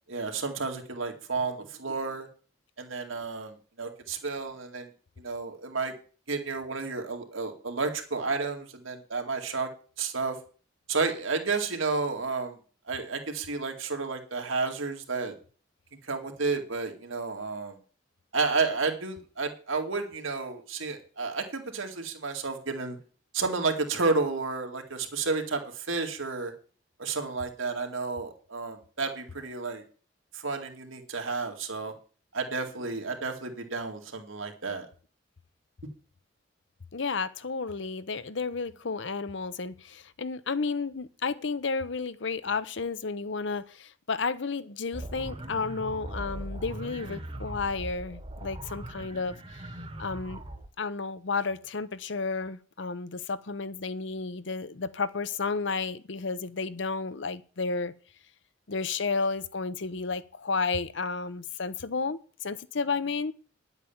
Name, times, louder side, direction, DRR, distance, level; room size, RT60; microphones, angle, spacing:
voice 1, 0.1-2.3 2.8-4.9 5.2-5.9 6.3-9.7 10.0-10.4 10.9-12.6 12.9-15.3 16.1-17.8 18.3-23.0 23.3-26.5 27.0-29.8 30.3-31.9 32.3-34.9, right 4 dB, 90° right, 2.3 m, -31 dB
voice 2, 36.9-49.6 50.0-50.4 50.8-57.9 58.7-63.3, left 4 dB, 70° left, 0.8 m, -32 dB
sound 1, 44.9-50.7, right 1 dB, 30° right, 1.1 m, -40 dB
10.5 x 8.2 x 7.2 m
head